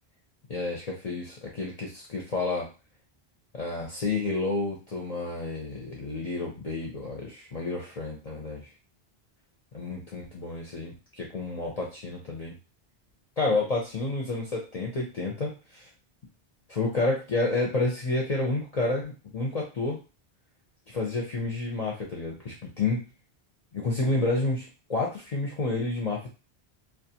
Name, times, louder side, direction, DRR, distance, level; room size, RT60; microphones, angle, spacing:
voice 1, 0.5-2.7 3.5-8.7 9.7-12.5 13.4-15.9 16.7-20.0 20.9-23.0 23.7-26.3, left 3 dB, 45° left, -2 dB, 0.6 m, -30 dB
2.4 x 2.2 x 2.7 m, 0.31 s
omnidirectional pair, 1.0 m